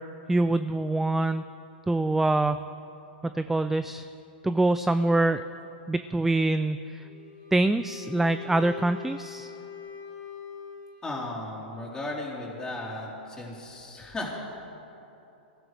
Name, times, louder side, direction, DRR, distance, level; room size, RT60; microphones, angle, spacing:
voice 1, 0.3-1.4 1.9-2.6 3.2-4.1 4.4-5.4 5.9-7.0 7.5-9.5, right 2 dB, 5° right, 11 dB, 0.3 m, -25 dB
Wind instrument woodwind instrument, 7.0-11.4, left 7 dB, 40° left, 3.4 m, -43 dB
voice 2, 11.0-14.3, left 2 dB, 15° left, -5 dB, 4.0 m, -35 dB
22.5 x 14.5 x 3.4 m, 2.9 s
hypercardioid pair, 120°, 6 cm